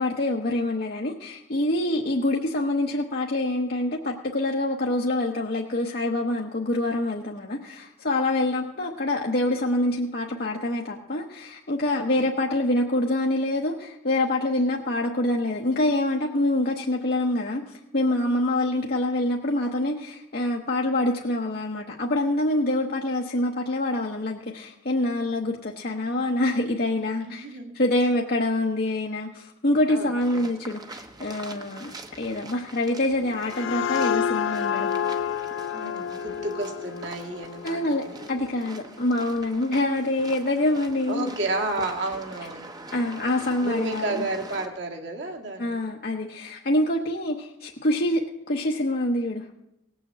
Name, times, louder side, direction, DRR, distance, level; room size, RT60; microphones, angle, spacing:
voice 1, 0.0-27.4 27.7-34.9 37.6-41.3 42.9-44.2 45.6-48.2 48.5-49.4, left 1 dB, 45° left, 0 dB, 0.9 m, -26 dB
voice 2, 27.2-27.8 29.9-30.5 35.7-38.2 41.1-42.7 43.6-45.8, right 2 dB, 55° right, 1 dB, 2.0 m, -32 dB
sound 1, 30.2-44.7, right 2 dB, 20° right, 0.9 m, -44 dB
sound 2, 33.2-38.6, left 8 dB, 65° left, 0.4 m, -29 dB
18.5 x 6.4 x 7.8 m, 0.86 s
head